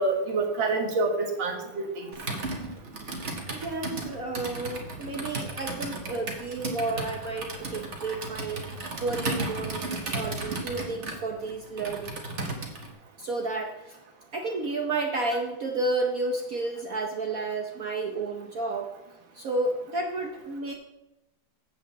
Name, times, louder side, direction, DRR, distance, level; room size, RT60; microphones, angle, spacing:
voice 1, 0.0-2.1, right 3 dB, 75° right, 3 dB, 2.1 m, -27 dB
Computer keyboard, 2.1-12.9, right 2 dB, 40° right, 1.6 m, -34 dB
voice 2, 3.5-8.6 9.0-12.2 13.2-14.0 14.3-18.9 19.3-20.7, right 2 dB, 55° right, 2 dB, 1.2 m, -31 dB
8.1 x 6.2 x 7.4 m, 0.95 s
omnidirectional pair, 2.2 m